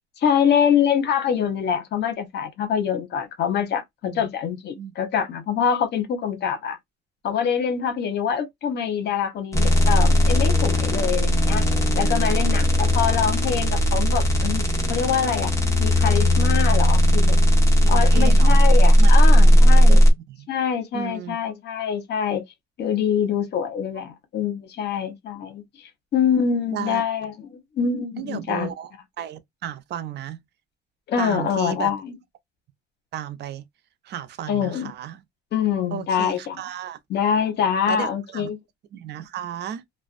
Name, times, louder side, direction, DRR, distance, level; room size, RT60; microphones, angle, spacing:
voice 1, 0.2-6.8 7.2-11.6 12.0-15.5 15.8-17.4 17.9-20.0 20.5-22.4 22.8-28.7 31.1-32.1 34.5-34.9 35.5-36.6 37.1-38.6, left 7 dB, 65° left, 0.9 m, -25 dB
sound 1, 9.5-20.1, equal, 15° left, 1.0 m, -17 dB
voice 2, 17.8-18.6 19.0-19.6 19.9-20.5 20.9-21.4 26.7-27.0 28.2-28.9 29.2-30.4 31.2-31.9 33.1-33.6 34.0-35.2 35.9-37.0 37.9-38.5 38.9-39.8, right 9 dB, 65° right, 0.5 m, -33 dB
2.4 x 2.1 x 2.4 m
cardioid pair, 105°, 19 cm